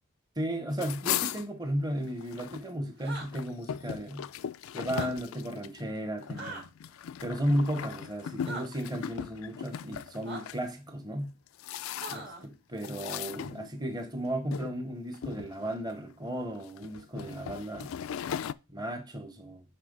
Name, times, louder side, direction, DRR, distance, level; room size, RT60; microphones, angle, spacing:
voice 1, 0.4-4.3 4.7-6.6 7.2-11.3 12.1-17.9 18.7-19.6, equal, 20° right, 0.9 m, -34 dB
sound 1, 0.7-2.7 3.0-10.6 11.2-12.4 12.8-14.0 14.5-14.7 15.1-15.9 16.6-18.5, left 9 dB, 80° left, 0.3 m, -38 dB
sound 2, 3.0-3.3 4.8-5.1 6.4-6.6 8.4-8.6 10.2-10.4 12.0-12.4, right 2 dB, 50° right, 2.1 m, -39 dB
9.2 x 3.2 x 5.2 m
head